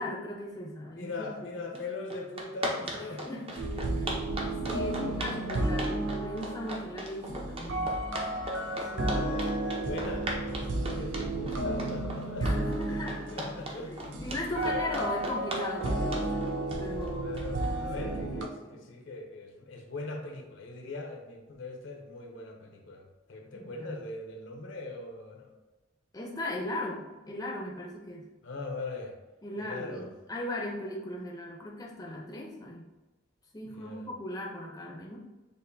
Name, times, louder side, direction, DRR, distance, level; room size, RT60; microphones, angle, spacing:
voice 1, 0.0-1.4 2.9-4.1 4.6-8.0 8.9-9.3 12.4-13.2 13.8-17.3 18.1-18.8 23.5-24.0 26.1-28.3 29.4-32.9 33.5-35.2, left 1 dB, 20° left, -1 dB, 0.6 m, -38 dB
voice 2, 0.9-3.4 3.9-4.1 4.4-5.8 8.9-14.2 14.5-14.8 17.2-25.5 28.4-29.2 29.6-30.1 33.6-34.1, left 3 dB, 65° left, 2 dB, 0.7 m, -41 dB
sound 1, 1.7-1.8 2.1-17.7, right 1 dB, 30° right, 0.6 m, -37 dB
sound 2, 3.6-18.5, right 1 dB, 65° right, 0.5 m, -33 dB
6.5 x 2.6 x 2.6 m, 1.1 s
head